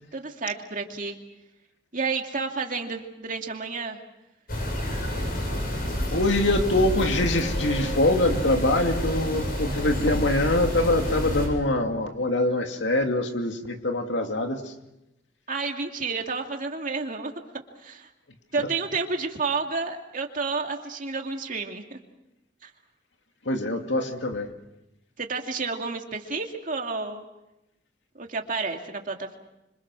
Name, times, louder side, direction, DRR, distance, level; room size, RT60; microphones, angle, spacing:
voice 1, 0.1-1.2 1.9-4.0 15.5-17.3 17.8-18.1 18.5-22.0 22.6-22.7 25.2-27.2 28.1-29.4, right 4 dB, 45° right, 3 dB, 2.5 m, -30 dB
sound 1, 4.5-11.5, equal, 50° left, 8.0 m, -29 dB
voice 2, 6.1-14.6 23.5-24.5, left 2 dB, 75° left, 4 dB, 2.5 m, -24 dB
26.5 x 26.0 x 6.2 m, 0.90 s
head